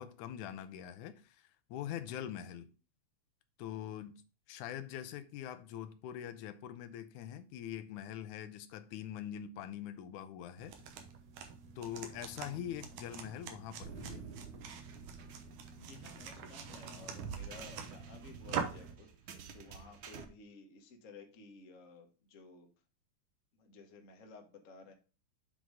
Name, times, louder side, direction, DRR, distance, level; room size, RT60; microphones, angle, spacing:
voice 1, 0.0-2.7 3.6-4.2 4.5-10.8 11.8-14.2, left 10 dB, 85° left, 2.1 m, -43 dB
sound 1, 10.6-18.9, right 6 dB, 85° right, 2.5 m, -45 dB
sound 2, 13.8-20.2, right 7 dB, 70° right, 1.3 m, -49 dB
voice 2, 15.8-22.7 23.6-24.9, left 3 dB, 50° left, 1.0 m, -55 dB
7.5 x 3.9 x 4.7 m
omnidirectional pair, 3.4 m